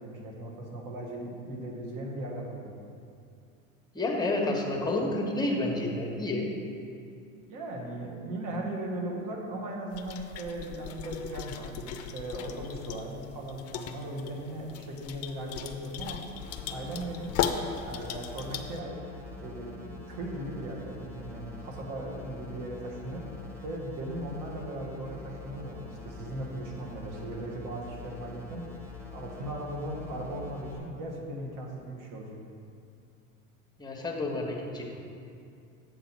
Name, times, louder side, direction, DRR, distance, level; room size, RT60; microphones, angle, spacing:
voice 1, 0.0-2.7 7.5-16.2 16.7-17.3 17.8-19.0 19.4-23.2 23.6-28.7 29.1-32.4, right 1 dB, 50° right, -1 dB, 1.6 m, -38 dB
voice 2, 3.9-6.5 33.8-34.8, left 2 dB, 10° left, 0 dB, 1.3 m, -29 dB
sound 1, 9.9-18.8, left 8 dB, 35° left, 0.5 m, -37 dB
sound 2, 16.3-30.8, left 3 dB, 5° right, 1.5 m, -45 dB
7.6 x 4.0 x 6.0 m, 2.5 s
hypercardioid pair, 90°, 42 cm